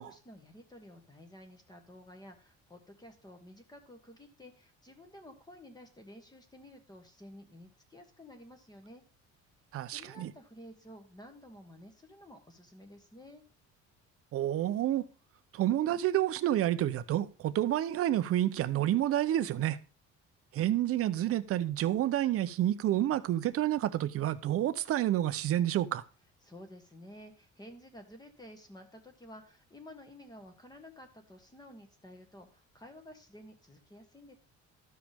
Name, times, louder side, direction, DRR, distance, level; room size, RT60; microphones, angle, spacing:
voice 1, 0.0-9.0 9.9-13.4 26.4-34.3, left 1 dB, 15° left, 1.4 m, -52 dB
voice 2, 9.7-10.3 14.3-15.0 15.5-19.8 20.5-26.0, right 12 dB, 50° right, 0.6 m, -29 dB
13.0 x 5.1 x 3.5 m
cardioid pair, 135°, 30 cm